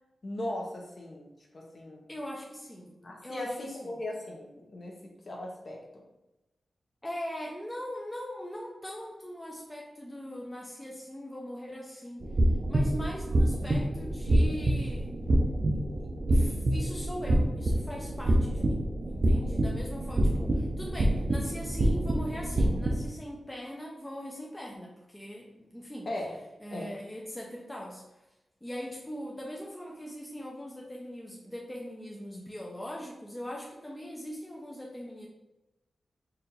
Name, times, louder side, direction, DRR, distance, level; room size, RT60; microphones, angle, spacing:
voice 1, 0.2-2.1 2.9-6.0 26.1-26.4 26.7-26.9, left 1 dB, 40° left, 0 dB, 0.9 m, -38 dB
voice 2, 2.1-2.9 3.2-3.5 3.8-3.9 7.0-12.2 12.7-15.1 16.3-26.1 26.6-28.0 28.6-35.3, equal, 10° left, -2 dB, 0.5 m, -40 dB
sound 1, 12.2-23.0, right 1 dB, 40° right, 0.6 m, -27 dB
4.3 x 2.6 x 3.9 m, 0.95 s
wide cardioid pair, 135°, 0 cm